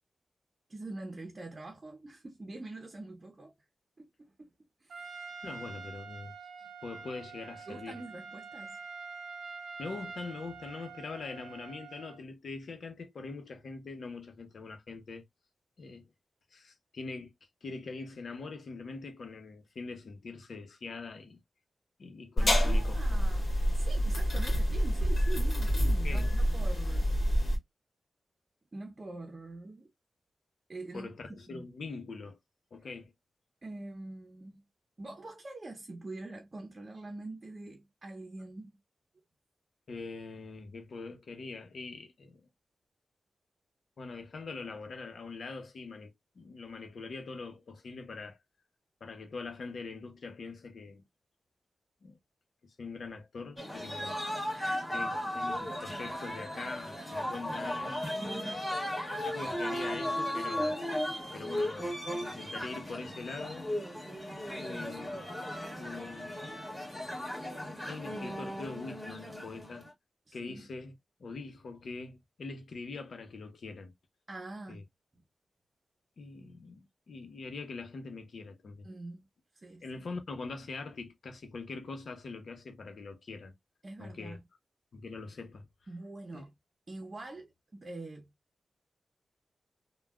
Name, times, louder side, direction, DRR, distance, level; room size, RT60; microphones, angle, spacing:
voice 1, 0.7-3.5 4.0-4.5 4.8-5.3 7.7-8.8 22.4-23.5 23.7-27.1 28.7-29.9 30.7-31.1 31.5-31.6 33.6-34.6 35.0-38.8 54.5-54.8 58.2-58.7 70.3-70.7 74.3-74.8 78.8-79.2 79.6-79.8 83.8-84.4 85.9-86.5 86.9-88.3, right 2 dB, 40° right, 0.7 m, -44 dB
Trumpet, 4.9-12.2, right 5 dB, 85° right, 0.4 m, -46 dB
voice 2, 5.4-6.3 6.8-8.0 9.8-15.2 15.8-16.1 16.5-17.3 17.6-21.4 22.0-23.0 26.0-26.3 30.9-32.4 32.7-33.1 39.9-42.5 44.0-48.4 49.0-51.0 52.0-52.2 52.6-54.2 54.9-58.0 59.1-60.8 61.3-63.7 64.6-65.3 65.8-66.5 67.1-67.2 67.6-69.9 70.3-70.9 71.2-73.9 74.7-74.8 76.2-78.9 79.8-83.5 84.0-84.4 84.9-85.7 86.3-86.4, left 4 dB, 70° left, 0.8 m, -43 dB
sound 1, 22.4-27.6, equal, 50° left, 1.5 m, -27 dB
sound 2, 53.6-69.9, left 1 dB, 5° left, 1.8 m, -36 dB
3.3 x 2.3 x 2.2 m
cardioid pair, 65°, 0 cm